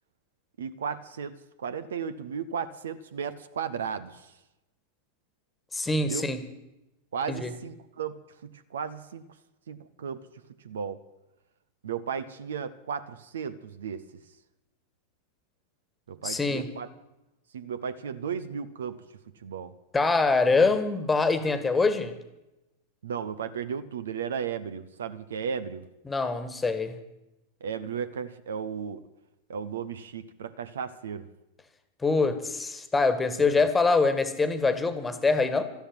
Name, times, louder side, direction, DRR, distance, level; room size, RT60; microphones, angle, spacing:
voice 1, 0.6-4.3 6.0-6.2 7.1-8.1 8.4-9.2 9.7-10.3 10.6-11.0 11.8-14.1 16.1-16.9 17.5-19.0 19.4-19.7 20.5-20.6 23.0-25.9 27.6-29.0 29.5-31.3 33.4-33.6, right 7 dB, 65° right, 14 dB, 0.8 m, -35 dB
voice 2, 5.7-6.4 7.3-7.5 16.2-16.7 19.9-22.1 26.1-26.9 32.0-35.6, left 3 dB, 10° left, 11 dB, 1.6 m, -24 dB
13.0 x 11.5 x 9.4 m, 0.95 s
figure-of-eight pair, 90°, 0 cm